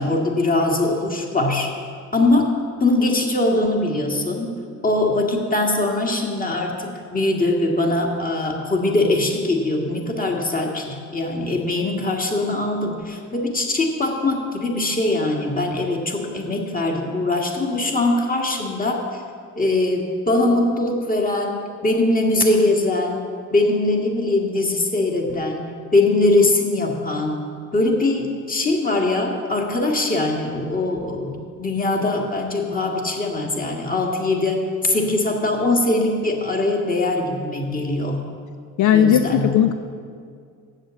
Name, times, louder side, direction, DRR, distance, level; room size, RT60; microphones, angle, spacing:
voice 1, 0.0-1.7 2.1-2.5 2.8-4.6 4.8-19.2 19.6-23.2 23.5-25.6 25.9-27.4 27.7-31.3 31.6-38.2 38.9-39.5, left 2 dB, 30° left, 1 dB, 1.7 m, -21 dB
voice 2, 38.8-39.7, left 9 dB, 75° left, 8 dB, 0.5 m, -16 dB
7.7 x 7.4 x 7.5 m, 2.2 s
cardioid pair, 90°, 30 cm